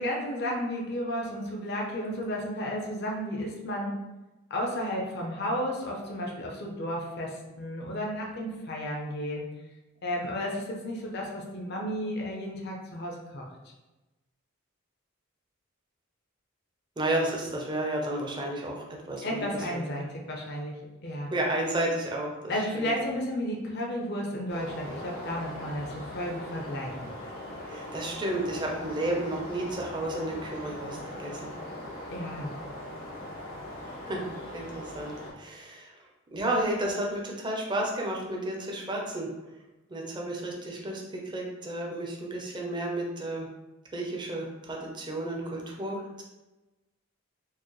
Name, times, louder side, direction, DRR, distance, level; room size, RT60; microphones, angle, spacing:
voice 1, 0.0-4.0 4.5-9.5 10.0-13.5 19.2-20.8 21.0-21.3 22.5-27.1 32.1-32.5, equal, 55° left, -1 dB, 0.6 m, -33 dB
voice 2, 17.0-19.9 21.3-22.9 27.6-31.4 34.1-34.3 34.5-35.9 36.3-39.3 39.9-43.5 43.9-46.2, right 1 dB, 25° right, -1 dB, 0.6 m, -32 dB
sound 1, 24.5-35.3, left 1 dB, 80° left, 1.2 m, -40 dB
4.5 x 2.0 x 3.1 m, 1.1 s
head